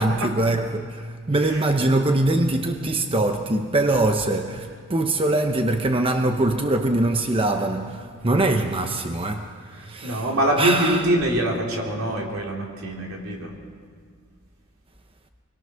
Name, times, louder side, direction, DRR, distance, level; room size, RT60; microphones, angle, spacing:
voice 1, 0.0-11.1, right 2 dB, 25° right, 0.9 m, -23 dB
voice 2, 10.0-13.5, right 1 dB, 75° right, 3.8 m, -24 dB
26.0 x 21.5 x 6.4 m
head